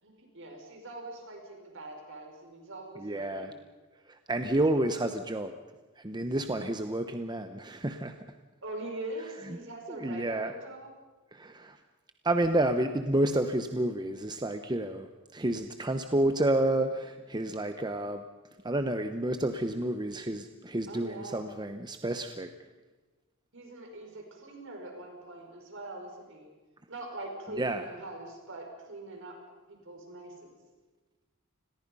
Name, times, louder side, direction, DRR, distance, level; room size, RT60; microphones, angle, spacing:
voice 1, 0.0-3.5 8.6-10.9 20.9-21.4 23.5-26.5 26.9-29.4 29.7-30.6, right 2 dB, 65° right, 2 dB, 5.9 m, -43 dB
voice 2, 3.0-3.5 4.1-5.6 6.0-8.3 9.4-9.6 9.9-10.5 11.3-11.8 12.2-18.2 18.6-22.5 27.6-27.8, right 1 dB, 20° right, 7 dB, 1.0 m, -30 dB
29.5 x 21.5 x 5.6 m, 1.2 s
head